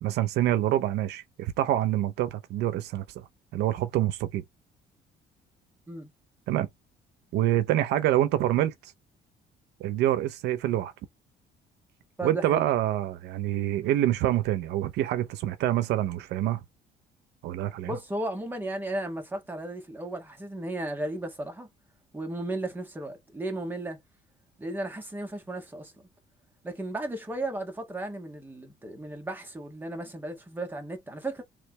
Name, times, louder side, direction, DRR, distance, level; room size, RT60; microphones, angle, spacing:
voice 1, 0.0-3.0 3.5-4.4 6.5-6.7 7.3-8.9 9.8-10.9 12.2-16.6 17.4-17.9, right 13 dB, 80° right, 0.7 m, -26 dB
voice 2, 12.2-12.7 17.8-21.7 22.1-24.0 24.6-25.9 26.6-31.4, right 1 dB, 10° right, 1.6 m, -35 dB
3.6 x 3.3 x 3.0 m
cardioid pair, 110°, 17 cm